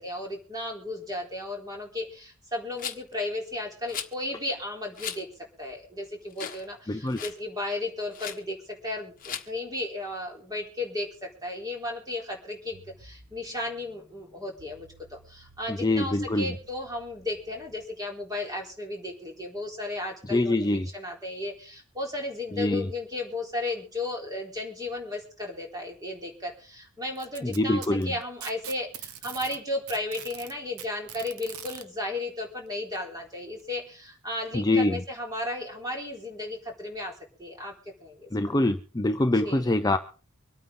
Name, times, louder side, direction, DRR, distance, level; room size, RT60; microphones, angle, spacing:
voice 1, 0.0-5.3 5.6-8.6 8.8-14.9 15.3-37.1 37.4-37.7 38.0-38.3 39.4-39.6, left 2 dB, 15° right, 1 dB, 4.0 m, -34 dB
Rattle, 2.8-3.1 3.9-4.1 5.0-5.2 5.7-5.8 6.3-6.7 6.9-7.4 8.1-8.4 9.2-9.5, left 9 dB, 40° left, 1.4 m, -36 dB
voice 2, 6.9-7.2 15.7-16.5 20.3-20.9 22.5-22.9 27.4-28.1 34.5-35.0 38.3-40.0, left 2 dB, 20° left, 7 dB, 0.6 m, -24 dB
sound 1, 12.6-17.8, right 2 dB, 65° right, 6.1 m, -57 dB
Packing tape duct tape, 27.2-29.6 29.9-31.8 33.0-33.1 33.6-33.7 34.5-34.6, right 10 dB, 85° right, 1.1 m, -41 dB
25.0 x 9.2 x 3.9 m, 0.38 s
head